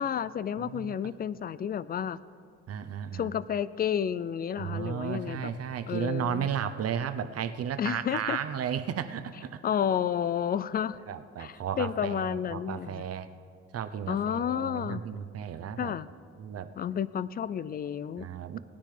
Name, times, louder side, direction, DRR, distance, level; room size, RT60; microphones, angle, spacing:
voice 1, 0.0-2.2 3.1-5.5 5.9-6.5 7.8-8.4 9.6-11.0 11.4-13.0 14.1-15.1 15.8-16.1 16.8-18.3, left 8 dB, 30° left, 18 dB, 0.3 m, -31 dB
voice 2, 0.6-1.0 2.7-3.3 4.6-9.6 11.1-13.3 13.7-15.9 16.4-16.7 18.2-18.6, right 8 dB, 55° right, 10 dB, 0.6 m, -34 dB
19.0 x 9.9 x 3.3 m, 2.3 s
cardioid pair, 90°, 30 cm